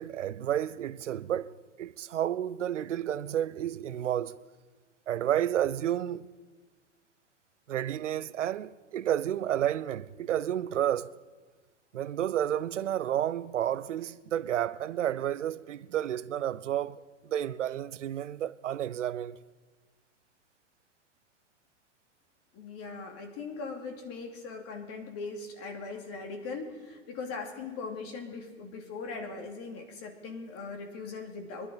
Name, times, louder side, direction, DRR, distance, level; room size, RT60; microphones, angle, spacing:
voice 1, 0.0-4.4 5.1-6.3 7.7-11.2 11.9-19.4, right 11 dB, 85° right, 0.7 m, -31 dB
voice 2, 22.5-31.7, left 4 dB, 40° left, 2.7 m, -40 dB
24.5 x 11.0 x 4.1 m
hypercardioid pair, 110°, 36 cm